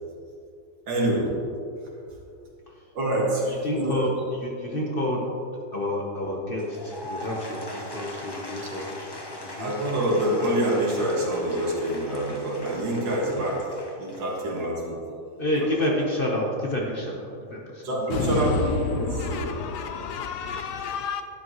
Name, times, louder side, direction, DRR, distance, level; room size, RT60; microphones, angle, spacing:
voice 1, 0.9-1.3 2.9-4.1 4.7-4.8 9.6-13.6 14.0-15.0 17.8-19.5, right 1 dB, 75° right, 2.4 m, -26 dB
voice 2, 3.5-5.3 5.7-9.0 9.4-9.7 15.4-17.8 18.3-18.4, left 1 dB, 35° left, 1.0 m, -29 dB
Applause / Crowd, 6.5-14.7, left 1 dB, 20° left, 0.6 m, -40 dB
voice 3, 18.1-21.2, left 6 dB, 75° left, 1.1 m, -30 dB
11.5 x 9.0 x 3.1 m
omnidirectional pair, 2.0 m